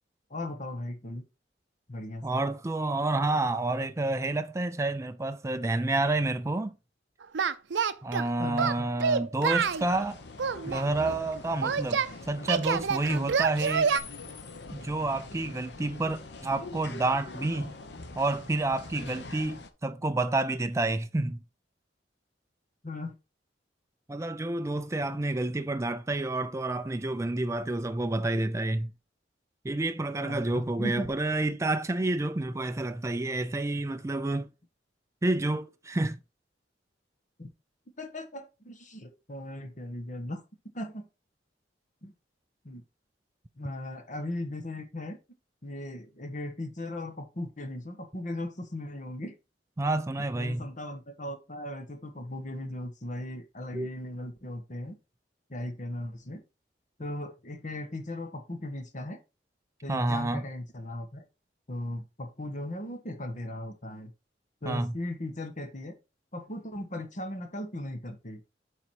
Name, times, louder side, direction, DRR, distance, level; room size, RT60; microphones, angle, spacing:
voice 1, 0.3-1.2 1.9-2.4 8.4-8.9 22.8-23.2 25.1-25.2 30.2-31.1 37.4-37.5 38.0-40.4 40.7-41.1 42.0-42.1 42.6-42.8 43.6-45.2 45.6-49.3 50.2-54.9 55.5-56.4 57.0-59.2 59.8-61.2 61.7-64.1 64.6-65.9 66.3-68.4, left 1 dB, 45° left, 1.4 m, -37 dB
voice 2, 2.2-6.7 8.0-10.2 10.6-13.9 14.7-17.7 18.2-21.4 24.1-28.9 29.6-34.5 35.2-36.2 49.8-50.7 53.7-53.9 59.9-60.5 64.6-64.9, right 2 dB, 15° right, 0.4 m, -29 dB
Singing, 7.3-8.3 8.6-9.8 10.4-12.1 12.5-14.0, right 6 dB, 75° right, 0.5 m, -27 dB
sound 1, 9.6-19.7, left 3 dB, 65° left, 0.9 m, -44 dB
7.5 x 4.0 x 4.6 m
head